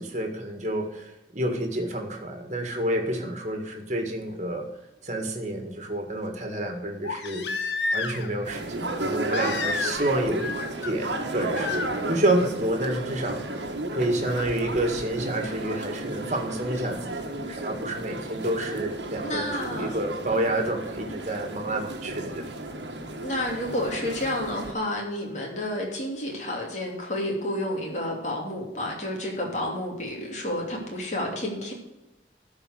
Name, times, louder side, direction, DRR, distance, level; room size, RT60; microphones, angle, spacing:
voice 1, 0.0-4.7 5.0-7.6 7.9-10.5 10.8-17.1 17.4-22.4, right 1 dB, 40° right, 4 dB, 1.8 m, -29 dB
Crying sobbing, 4.3-4.4 7.0-8.4 9.3-10.1 10.4-10.9 11.5-11.9 13.5-13.6, left 4 dB, 80° left, 1.0 m, -30 dB
sound 1, 8.4-24.7, right 2 dB, 90° right, 1.4 m, -33 dB
voice 2, 19.2-20.0 23.2-31.7, left 1 dB, 40° left, -1 dB, 2.7 m, -30 dB
12.0 x 4.8 x 6.5 m, 0.98 s
head